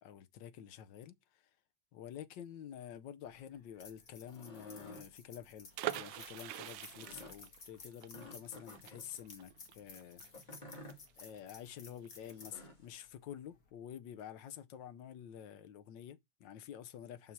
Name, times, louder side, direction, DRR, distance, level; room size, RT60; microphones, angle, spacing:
voice 1, 0.0-1.6 1.9-10.5 11.2-17.3, left 9 dB, 80° left, 1.4 m, -49 dB
sound 1, 3.2-13.7, left 4 dB, 50° left, 2.1 m, -56 dB
sound 2, 4.2-5.1 5.7-6.1 6.9-7.4 8.1-9.1 10.3-11.0 12.2-12.9, left 1 dB, 25° left, 2.2 m, -53 dB
sound 3, 5.7-11.4 11.7-11.8 12.0-12.3, right 14 dB, 85° right, 1.3 m, -44 dB
6.0 x 5.6 x 4.6 m
omnidirectional pair, 2.0 m